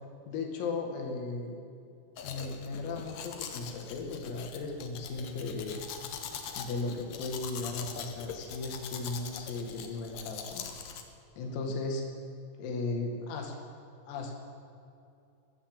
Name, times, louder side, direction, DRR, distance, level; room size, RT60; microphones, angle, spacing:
voice 1, 0.3-1.6 2.2-5.8 6.6-10.7 11.4-12.0 12.6-13.6 14.1-14.3, left 3 dB, 90° left, 2 dB, 5.0 m, -36 dB
Domestic sounds home sounds, 2.2-11.0, left 7 dB, 65° left, 2.1 m, -42 dB
22.5 x 14.5 x 8.0 m, 2.6 s
omnidirectional pair, 5.9 m